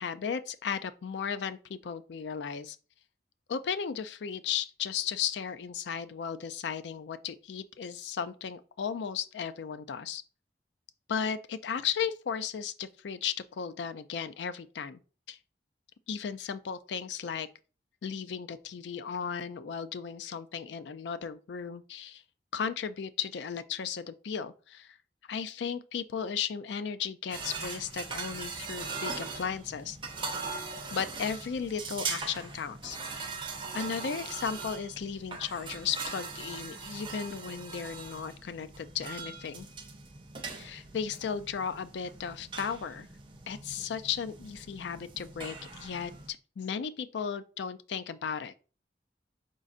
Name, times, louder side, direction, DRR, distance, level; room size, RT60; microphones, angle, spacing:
voice 1, 0.0-2.8 3.5-10.2 11.1-15.0 15.3-15.4 16.1-17.5 18.0-22.2 22.5-25.0 25.3-30.0 30.9-33.0 33.7-39.7 40.5-43.1 43.5-48.5, left 7 dB, 75° left, 0.4 m, -35 dB
sound 1, 27.3-46.3, right 4 dB, 25° right, 0.5 m, -41 dB
5.1 x 3.8 x 2.4 m
head